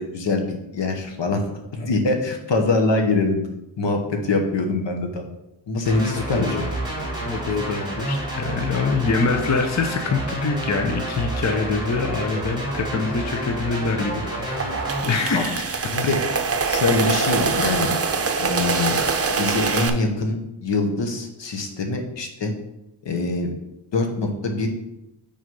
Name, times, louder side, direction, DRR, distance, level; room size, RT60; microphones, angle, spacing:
voice 1, 0.0-3.4 3.8-5.2 5.7-6.7 15.3-15.4 15.9-16.2 16.7-17.9 18.4-19.0 19.4-22.5 23.0-23.5 23.9-24.7, left 3 dB, 75° left, 4 dB, 1.2 m, -24 dB
sound 1, 5.8-15.0, right 1 dB, 10° right, 2.8 m, -29 dB
voice 2, 6.1-6.7 7.2-14.7 15.0-15.7, left 4 dB, 40° left, 4 dB, 0.7 m, -25 dB
sound 2, 14.3-19.9, right 4 dB, 35° right, 0.6 m, -24 dB
6.3 x 4.2 x 5.3 m, 0.87 s
wide cardioid pair, 110°, 44 cm